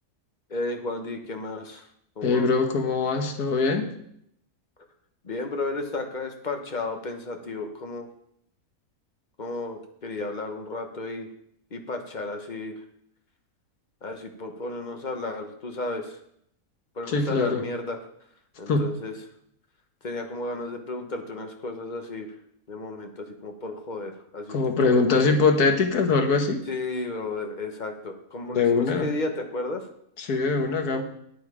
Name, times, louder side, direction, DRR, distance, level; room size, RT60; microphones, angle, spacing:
voice 1, 0.5-1.8 2.2-2.5 5.2-8.1 9.4-11.3 11.7-12.7 14.0-16.2 16.9-18.0 18.6-19.1 20.0-22.3 22.7-25.3 26.7-29.9, left 2 dB, 35° left, 5 dB, 1.1 m, -33 dB
voice 2, 2.2-3.9 17.1-17.6 18.7-18.9 24.5-26.6 28.5-29.1 30.2-31.0, left 4 dB, 85° left, 5 dB, 1.7 m, -22 dB
9.1 x 8.2 x 4.9 m, 0.72 s
omnidirectional pair, 1.6 m